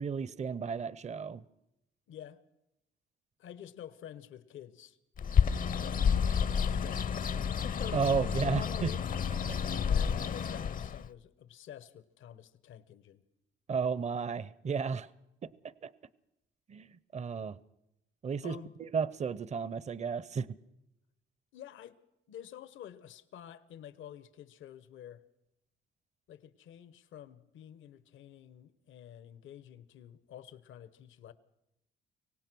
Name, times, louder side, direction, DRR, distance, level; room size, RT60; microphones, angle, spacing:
voice 1, 0.0-1.4 7.9-8.9 9.5-9.6 13.7-15.1 15.8-15.9 16.7-16.9 17.1-17.6 18.2-20.5, right 5 dB, 35° right, 0.7 m, -33 dB
voice 2, 2.1-2.4 3.4-5.0 5.8-6.0 6.6-7.0 7.3-7.6 7.8-8.5 9.9-13.2 18.4-18.7 21.5-22.0 22.3-25.2 26.3-31.3, left 10 dB, 80° left, 1.0 m, -50 dB
Bird, 5.2-11.1, left 7 dB, 45° left, 0.6 m, -30 dB
24.5 x 17.5 x 6.2 m
cardioid pair, 90°, 20 cm